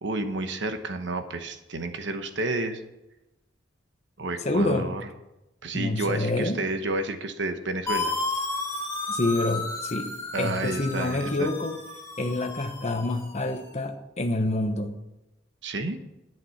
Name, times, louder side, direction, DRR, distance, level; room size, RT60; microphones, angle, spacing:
voice 1, 0.0-2.8 4.2-5.0 5.6-8.1 10.3-11.5 15.6-16.0, right 2 dB, 70° right, 7 dB, 1.1 m, -30 dB
voice 2, 4.4-4.9 5.7-6.6 9.1-10.1 10.4-11.8 12.2-14.9, left 2 dB, 35° left, 4 dB, 1.1 m, -27 dB
sound 1, 7.9-13.6, left 3 dB, 15° left, 3.2 m, -33 dB
11.0 x 9.3 x 5.8 m, 0.96 s
head